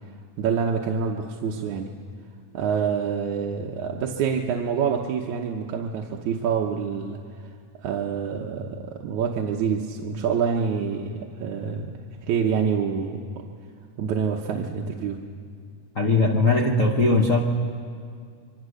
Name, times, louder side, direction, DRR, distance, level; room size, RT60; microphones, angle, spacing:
voice 1, 0.4-2.0 2.5-7.5 7.8-11.9 12.2-13.2 14.0-15.2, right 6 dB, 75° right, 0 dB, 2.3 m, -26 dB
voice 2, 15.9-17.4, left 3 dB, 85° left, 2 dB, 0.7 m, -19 dB
27.0 x 23.5 x 6.5 m, 2.2 s
omnidirectional pair, 3.6 m